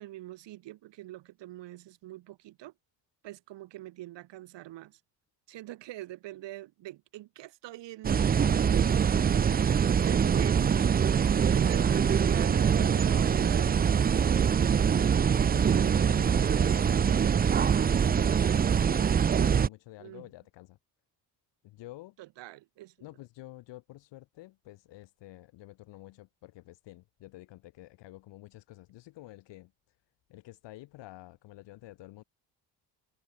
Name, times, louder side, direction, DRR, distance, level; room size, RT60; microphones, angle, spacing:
voice 1, 0.0-2.7 3.2-5.0 5.5-10.7 11.5-14.0 15.7-16.1 20.0-20.2 22.2-22.9, right 16 dB, 90° right, 3.8 m, -45 dB
sound 1, 8.0-19.7, right 7 dB, 25° right, 0.4 m, -24 dB
voice 2, 15.5-18.3 18.8-20.8 21.6-22.2 23.0-29.7 30.3-32.2, left 17 dB, 90° left, 1.7 m, -49 dB
cardioid pair, 110°, 42 cm